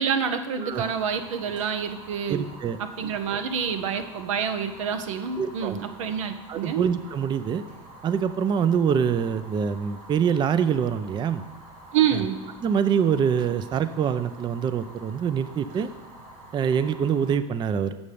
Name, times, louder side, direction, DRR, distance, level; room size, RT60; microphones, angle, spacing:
voice 1, 0.0-2.5 2.8-6.9 11.9-12.4, right 7 dB, 80° right, 8 dB, 0.7 m, -27 dB
voice 2, 0.6-0.9 2.3-2.8 5.4-5.8 6.5-7.6 8.0-11.5 12.1-12.2 12.6-15.9 16.5-17.9, right 7 dB, 30° right, 13 dB, 0.4 m, -25 dB
Fire, 0.7-17.4, right 1 dB, 55° right, 2.6 m, -47 dB
7.0 x 6.6 x 5.0 m, 1.2 s
hypercardioid pair, 80°, 16 cm